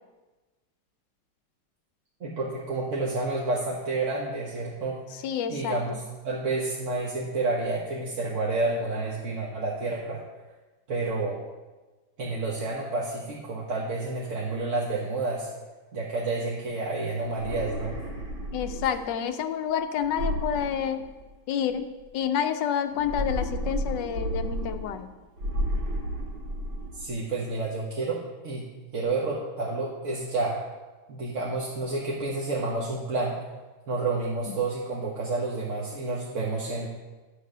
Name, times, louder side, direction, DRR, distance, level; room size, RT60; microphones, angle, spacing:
voice 1, 2.2-5.0 5.5-6.0 6.2-10.2 10.9-11.4 12.2-15.5 15.9-18.0 26.9-28.6 28.9-30.6 31.1-33.4 33.9-36.9, right 3 dB, 45° right, -4 dB, 1.4 m, -29 dB
voice 2, 5.2-6.0 18.5-21.0 21.5-25.1 34.5-34.6, left 8 dB, 70° left, 9 dB, 1.2 m, -29 dB
sound 1, 17.2-19.2 20.0-21.5 22.9-25.1 25.4-27.1, equal, 65° right, 2.5 m, -32 dB
10.0 x 5.6 x 6.6 m, 1.2 s
omnidirectional pair, 2.1 m